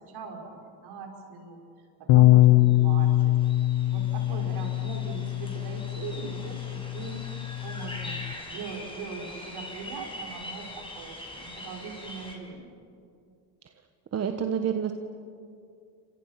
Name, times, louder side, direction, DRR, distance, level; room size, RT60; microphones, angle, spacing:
voice 1, 0.0-3.4 3.9-7.2 7.6-8.2 8.5-12.8, right 5 dB, 60° right, 2 dB, 5.7 m, -41 dB
Bass guitar, 2.1-8.3, left 15 dB, 65° left, 1.0 m, -23 dB
sound 1, 2.7-2.8 3.0-12.3, left 1 dB, 10° left, 5.9 m, -43 dB
voice 2, 14.1-14.9, right 8 dB, 35° right, 6 dB, 1.5 m, -28 dB
30.0 x 26.5 x 6.0 m, 2.4 s
supercardioid pair, 100°, 45 cm